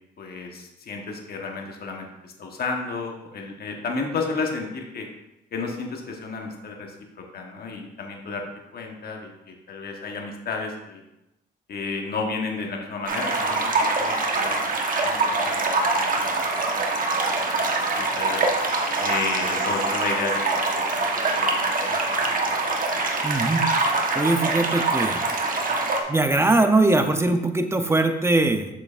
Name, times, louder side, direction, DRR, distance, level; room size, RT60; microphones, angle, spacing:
voice 1, 0.2-5.1 5.5-8.4 8.7-11.0 11.7-18.5 19.0-22.1, left 4 dB, 50° left, 1 dB, 1.2 m, -33 dB
sound 1, 13.1-26.0, right 3 dB, 45° right, 1.2 m, -24 dB
voice 2, 23.2-23.7 24.1-25.2 26.1-28.7, right 2 dB, 15° right, 6 dB, 0.7 m, -21 dB
8.0 x 6.6 x 2.5 m, 0.92 s
cardioid pair, 90°, 20 cm